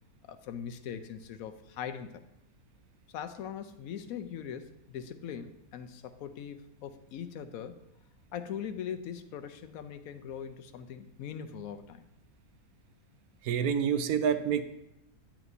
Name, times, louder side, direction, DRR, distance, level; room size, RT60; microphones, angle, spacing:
voice 1, 0.2-2.3 3.1-7.8 8.3-12.0, left 8 dB, 75° left, 9 dB, 1.0 m, -41 dB
voice 2, 13.4-14.6, right 8 dB, 80° right, 10 dB, 1.1 m, -27 dB
9.2 x 8.8 x 2.7 m, 0.86 s
omnidirectional pair, 1.6 m